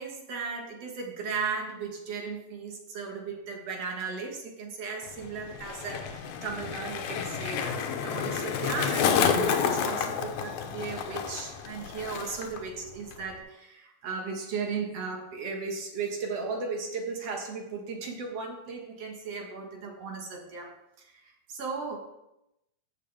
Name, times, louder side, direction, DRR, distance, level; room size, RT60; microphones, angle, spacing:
voice 1, 0.0-20.7 21.1-22.0, right 4 dB, 60° right, 2 dB, 2.5 m, -36 dB
Skateboard, 5.0-12.6 12.9-13.4, left 7 dB, 85° left, 2.3 m, -30 dB
15.0 x 7.3 x 3.5 m, 0.89 s
omnidirectional pair, 3.3 m